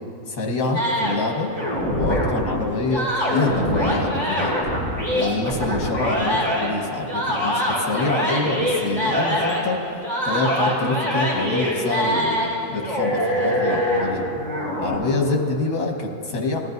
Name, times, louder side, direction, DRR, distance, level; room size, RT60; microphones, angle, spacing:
voice 1, 0.3-1.5 1.9-4.5 5.2-9.8 10.2-12.4 12.7-14.3 14.8-16.6, left 3 dB, 70° left, 0 dB, 1.9 m, -26 dB
sound 1, 0.7-2.5 2.9-6.7 7.1-9.7 10.0-12.5 12.8-14.9, equal, 30° right, 3.1 m, -23 dB
sound 2, 3.9-4.1 5.9-6.1 7.9-8.0 9.5-9.6, left 5 dB, 30° left, 2.7 m, -37 dB
19.5 x 13.0 x 2.6 m, 2.8 s
omnidirectional pair, 1.7 m